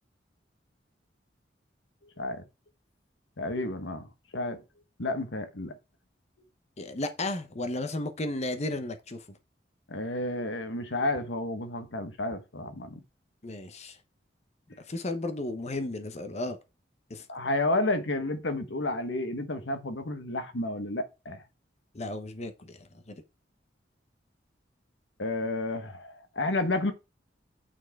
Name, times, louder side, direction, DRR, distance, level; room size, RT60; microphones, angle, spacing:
voice 1, 3.4-4.6 5.0-5.7 9.9-13.0 17.3-21.4 25.2-26.9, left 2 dB, 85° left, 1.3 m, -31 dB
voice 2, 6.8-9.4 13.4-14.0 14.9-16.6 17.1-17.2 21.9-23.2, left 2 dB, 40° left, 1.0 m, -34 dB
8.8 x 4.7 x 4.7 m
head